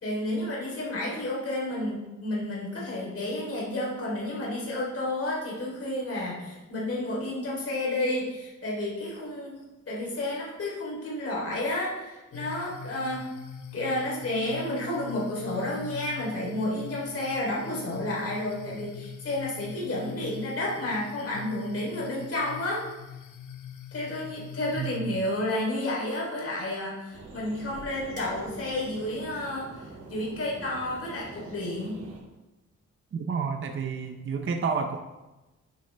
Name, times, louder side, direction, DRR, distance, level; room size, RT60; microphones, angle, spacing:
voice 1, 0.0-9.6 9.9-13.3 13.7-22.8 23.9-32.0, left 1 dB, 50° left, -5 dB, 3.4 m, -31 dB
sound 1, 12.3-25.0, left 8 dB, 85° left, 0.8 m, -43 dB
voice 2, 24.7-25.2 33.1-35.0, right 5 dB, 40° right, 5 dB, 0.6 m, -30 dB
sound 2, 27.1-32.2, right 3 dB, 80° right, 2.4 m, -45 dB
10.0 x 9.3 x 3.3 m, 1.1 s
wide cardioid pair, 170°, 30 cm